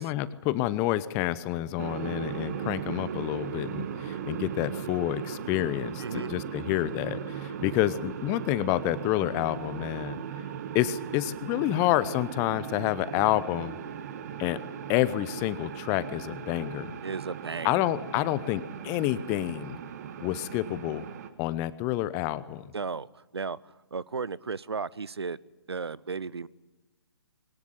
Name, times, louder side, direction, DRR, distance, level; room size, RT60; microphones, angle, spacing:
voice 1, 0.0-10.2 10.7-13.8 14.4-14.6 14.9-16.9 17.6-19.8 20.2-21.0 21.4-22.7, left 15 dB, 20° left, 17 dB, 0.7 m, -28 dB
sound 1, 1.8-21.3, right 8 dB, 35° right, 1.6 m, -38 dB
voice 2, 6.0-6.3 17.0-17.8 22.7-25.4 25.7-26.5, right 5 dB, 70° right, 22 dB, 0.7 m, -35 dB
22.5 x 18.0 x 9.8 m, 1.1 s
figure-of-eight pair, 130°, 14 cm